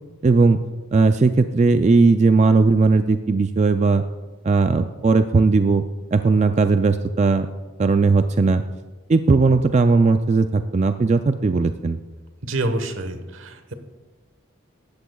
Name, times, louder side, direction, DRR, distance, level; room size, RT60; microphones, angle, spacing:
voice 1, 0.2-0.6 0.9-4.0 4.4-5.8 6.1-7.5 7.8-8.6 9.1-12.0, right 3 dB, 35° right, 9 dB, 0.3 m, -17 dB
voice 2, 12.4-13.7, right 2 dB, 70° right, 8 dB, 1.2 m, -27 dB
17.5 x 13.5 x 2.3 m, 1.3 s
head